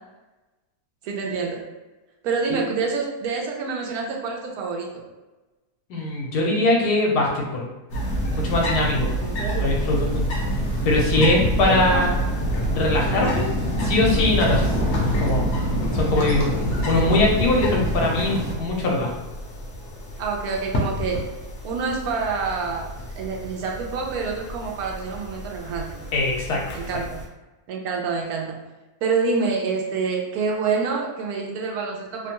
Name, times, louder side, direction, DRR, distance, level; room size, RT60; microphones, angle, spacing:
voice 1, 1.0-1.6 2.2-5.0 9.2-9.7 11.7-12.0 13.0-13.3 20.2-21.2 21.6-22.9 23.2-26.1 26.7-27.2 27.7-28.6 29.0-32.3, right 4 dB, 75° right, 0 dB, 1.0 m, -27 dB
voice 2, 5.9-7.7 8.3-9.1 9.6-10.3 10.8-12.2 12.7-13.5 13.8-14.7 15.2-15.5 15.9-16.5 16.9-19.1 26.1-26.6, left 2 dB, 80° left, -2 dB, 1.3 m, -21 dB
sound 1, 7.9-27.2, equal, 55° left, 0.9 m, -26 dB
3.0 x 2.2 x 2.9 m, 1.1 s
omnidirectional pair, 1.7 m